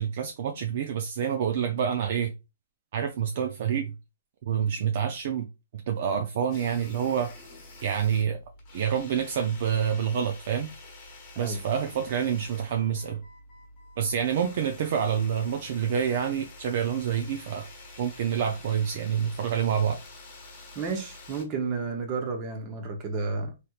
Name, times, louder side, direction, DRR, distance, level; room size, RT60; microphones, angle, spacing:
voice 1, 0.0-2.3 2.9-3.9 4.4-5.5 5.9-7.3 7.8-8.4 8.7-10.7 11.4-13.2 14.0-17.7 18.0-20.0, right 8 dB, 45° right, 0.4 m, -27 dB
sound 1, 6.5-21.4, left 2 dB, 25° left, 1.2 m, -48 dB
voice 2, 20.7-23.5, right 4 dB, 25° right, 0.8 m, -31 dB
3.3 x 2.9 x 2.4 m
hypercardioid pair, 160°, 0 cm